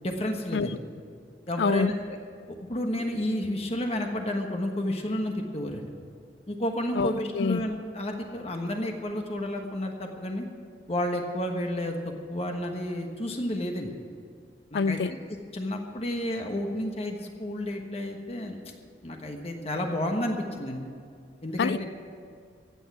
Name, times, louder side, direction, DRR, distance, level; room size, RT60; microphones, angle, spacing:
voice 1, 0.0-0.8 1.5-2.2 2.5-5.9 6.5-10.5 10.9-12.0 12.3-13.9 14.7-15.2 15.5-18.6 19.0-20.8 21.4-21.8, left 1 dB, 35° left, 3 dB, 1.3 m, -31 dB
voice 2, 1.6-1.9 7.0-7.6 14.7-15.1 21.6-21.8, left 5 dB, 70° left, 17 dB, 0.4 m, -26 dB
15.0 x 8.1 x 9.7 m, 2.4 s
head